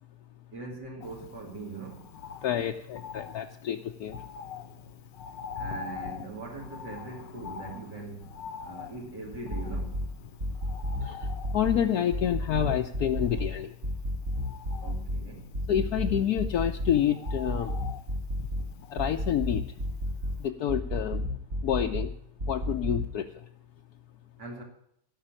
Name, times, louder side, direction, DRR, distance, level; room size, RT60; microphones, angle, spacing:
voice 1, 0.5-2.1 5.6-10.0 14.8-15.5 24.4-24.6, right 3 dB, 75° right, 3.0 m, -41 dB
Bird, 1.0-20.1 20.4-20.5, left 5 dB, 85° left, 1.6 m, -45 dB
voice 2, 2.4-4.1 11.5-13.7 15.7-17.7 18.9-19.6 20.4-21.2 21.6-22.1 22.5-23.2, left 10 dB, 65° left, 1.2 m, -28 dB
sound 1, 9.3-10.1 10.4-11.8 12.1-13.5 13.8-15.2 15.5-16.9 17.3-18.6 19.0-20.4 20.7-22.1 22.4-23.1, left 1 dB, 50° right, 2.5 m, -31 dB
17.0 x 5.9 x 8.8 m
omnidirectional pair, 1.9 m